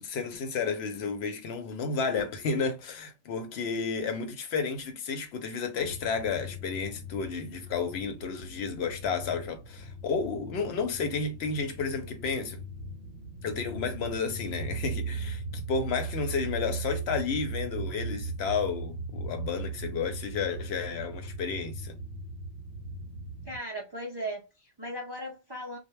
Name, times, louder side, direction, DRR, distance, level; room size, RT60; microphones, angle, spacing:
voice 1, 0.0-12.6 13.4-22.0, left 5 dB, 65° left, 0.8 m, -32 dB
sound 1, 5.8-23.6, right 2 dB, 65° right, 0.9 m, -38 dB
voice 2, 23.4-25.8, right 1 dB, 40° right, 0.3 m, -37 dB
2.2 x 2.1 x 3.0 m
omnidirectional pair, 1.3 m